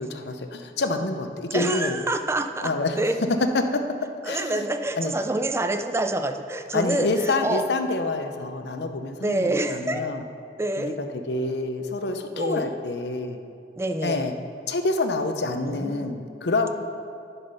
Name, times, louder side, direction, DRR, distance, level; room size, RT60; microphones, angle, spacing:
voice 1, 0.0-2.0 2.6-3.0 3.5-4.7 5.0-5.1 6.7-10.2 10.8-13.4 14.0-14.3 14.7-16.7, left 2 dB, 70° left, 7 dB, 0.7 m, -27 dB
voice 2, 1.5-3.2 4.2-7.7 9.2-10.0 10.6-11.0 12.4-12.7 13.8-14.3 15.7-16.1, right 2 dB, 15° right, 8 dB, 0.4 m, -27 dB
10.5 x 5.8 x 5.4 m, 2.4 s
head